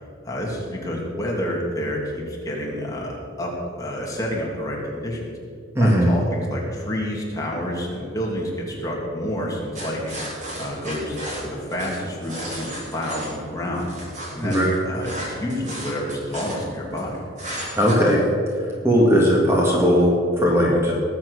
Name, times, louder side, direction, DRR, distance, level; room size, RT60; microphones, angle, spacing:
voice 1, 0.2-5.3 5.8-10.2 10.6-13.9 14.3-14.6 14.8-17.2, equal, 15° left, -3 dB, 2.7 m, -29 dB
voice 2, 5.8-6.1 14.4-14.8 17.8-18.2 18.8-20.9, equal, 15° right, -3 dB, 1.9 m, -18 dB
sound 1, 9.7-13.3 13.7-17.0 17.4-18.1, right 1 dB, 40° right, 4.3 m, -34 dB
19.5 x 7.7 x 6.5 m, 2.4 s
head